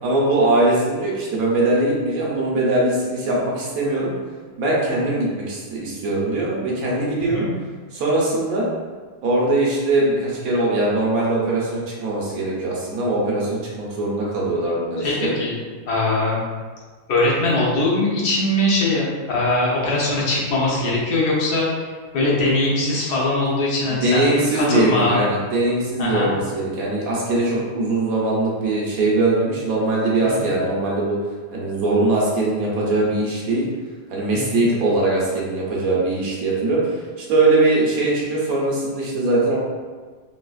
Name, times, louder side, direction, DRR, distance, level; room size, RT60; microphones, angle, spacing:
voice 1, 0.0-4.1 4.6-7.4 7.9-8.6 9.2-15.3 23.9-31.2 31.5-33.6 34.1-39.6, right 2 dB, 70° right, -5 dB, 1.1 m, -21 dB
voice 2, 15.0-15.5 15.9-16.4 17.1-21.9 22.1-25.2 26.0-26.3 30.4-30.5 34.3-34.6, left 2 dB, 90° left, -5 dB, 1.4 m, -21 dB
4.0 x 2.4 x 2.3 m, 1.5 s
omnidirectional pair, 1.7 m